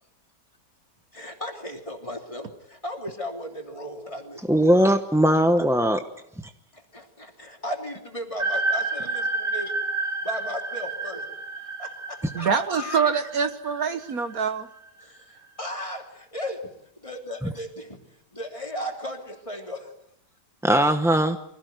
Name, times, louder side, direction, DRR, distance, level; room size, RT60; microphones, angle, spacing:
voice 1, 1.1-4.8 6.7-9.7 10.2-11.2 11.8-13.1 15.0-18.0 18.3-19.9, left 1 dB, 15° left, 2 dB, 3.1 m, -36 dB
voice 2, 4.5-6.0 20.6-21.4, equal, 5° right, 6 dB, 0.5 m, -19 dB
sound 1, 8.4-14.6, right 3 dB, 40° right, 2.6 m, -30 dB
voice 3, 12.3-14.7, right 6 dB, 60° right, 9 dB, 1.5 m, -25 dB
24.5 x 17.0 x 9.3 m, 0.80 s
omnidirectional pair, 1.9 m